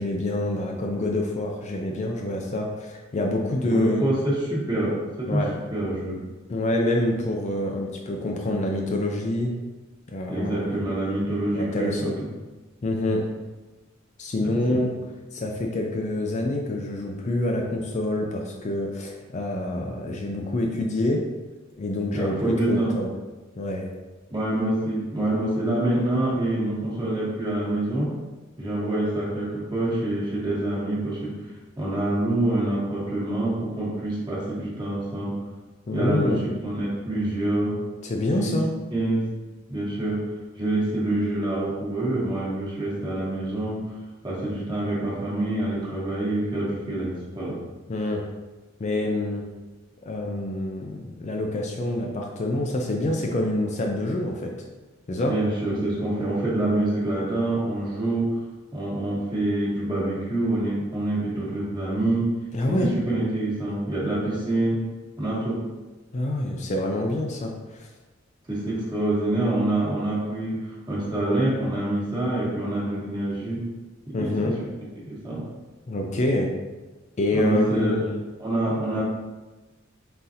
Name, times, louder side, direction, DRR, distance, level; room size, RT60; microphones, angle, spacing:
voice 1, 0.0-4.0 5.3-5.5 6.5-9.5 10.1-10.7 11.5-12.2 12.8-13.2 14.2-14.9 15.3-21.2 21.8-22.4 22.7-23.1 23.6-23.9 35.9-36.4 38.0-38.7 47.9-48.2 48.8-49.4 50.1-54.5 55.1-55.3 62.5-62.9 66.1-67.9 74.1-74.5 75.9-76.5 77.2-78.1, left 1 dB, 35° left, 1 dB, 0.4 m, -26 dB
voice 2, 3.6-5.5 5.7-6.2 10.3-12.3 14.4-14.9 22.1-22.9 24.3-28.2 28.6-35.4 35.9-37.8 38.3-38.6 38.9-39.3 39.7-40.3 40.6-44.0 44.2-47.6 55.3-58.4 58.7-62.3 62.7-64.8 65.2-65.7 68.5-73.7 74.2-74.7 74.9-75.4 77.3-79.0, right 1 dB, 20° right, -6 dB, 1.2 m, -26 dB
3.9 x 3.8 x 2.8 m, 1.2 s
head